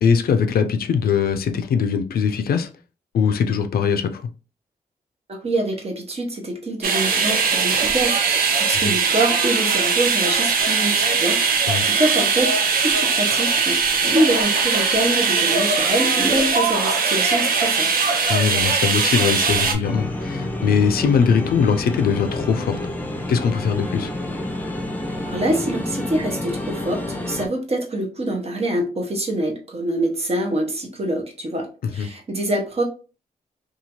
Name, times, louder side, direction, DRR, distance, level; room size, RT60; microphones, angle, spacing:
voice 1, 0.0-2.7 3.1-4.3 8.7-8.9 11.7-11.9 18.3-22.8 23.3-24.1 32.0-32.1, left 6 dB, 80° left, 0.4 m, -21 dB
voice 2, 5.3-11.4 11.8-12.5 12.8-18.0 25.3-31.7 31.9-32.8, right 1 dB, 40° right, 0.9 m, -25 dB
sound 1, 6.8-19.7, right 5 dB, 70° right, 0.5 m, -20 dB
sound 2, 19.8-27.5, left 1 dB, 10° left, 0.6 m, -29 dB
2.8 x 2.4 x 2.9 m
cardioid pair, 70°, 15 cm